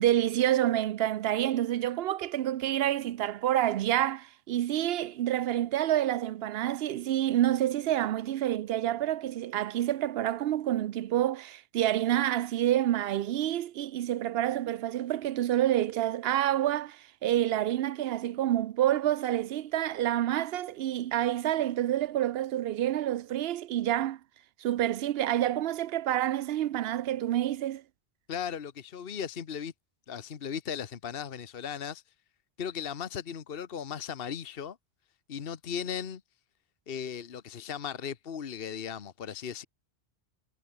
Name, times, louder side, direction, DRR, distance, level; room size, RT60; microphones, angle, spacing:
voice 1, 0.0-24.2 24.6-27.8, right 12 dB, 70° right, 0.8 m, -28 dB
voice 2, 28.3-29.7 30.1-32.0 32.6-34.8 35.3-36.2 36.9-39.6, left 7 dB, 60° left, 1.2 m, -37 dB
omnidirectional pair, 1.1 m